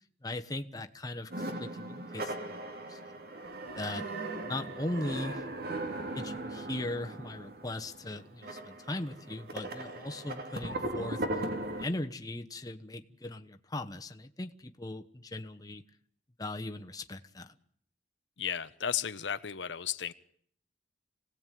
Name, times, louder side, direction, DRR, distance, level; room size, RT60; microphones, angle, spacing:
voice 1, 0.2-3.2 3.7-4.1 4.4-5.4 6.1-11.5 11.8-15.8 16.4-17.5, left 1 dB, 20° left, 1.2 m, -39 dB
sound 1, 1.3-11.8, right 1 dB, 60° right, 2.6 m, -38 dB
voice 2, 18.4-20.1, left 8 dB, 85° left, 1.0 m, -34 dB
27.0 x 18.0 x 9.3 m
head